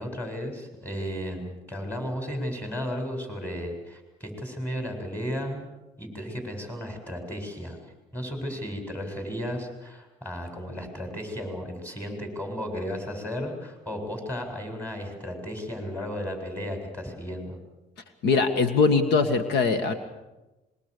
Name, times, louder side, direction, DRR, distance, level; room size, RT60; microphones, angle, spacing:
voice 1, 0.0-7.8 8.1-17.6, equal, 10° left, 3 dB, 7.9 m, -34 dB
voice 2, 18.2-19.9, left 4 dB, 75° left, 9 dB, 1.9 m, -21 dB
26.0 x 23.0 x 7.0 m, 1.0 s
cardioid pair, 110°, 17 cm